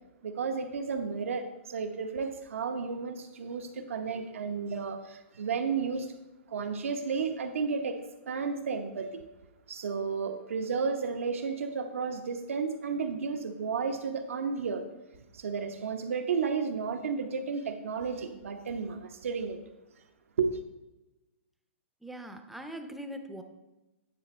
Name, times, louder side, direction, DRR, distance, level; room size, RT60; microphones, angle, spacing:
voice 1, 0.2-6.1 6.5-8.0 8.3-9.2 9.7-14.8 15.3-19.6 20.4-20.6, right 5 dB, 85° right, 6 dB, 0.9 m, -32 dB
voice 2, 22.0-23.4, right 1 dB, ahead, 5 dB, 0.6 m, -41 dB
9.3 x 4.1 x 4.3 m, 1.0 s
hypercardioid pair, 150°, 7 cm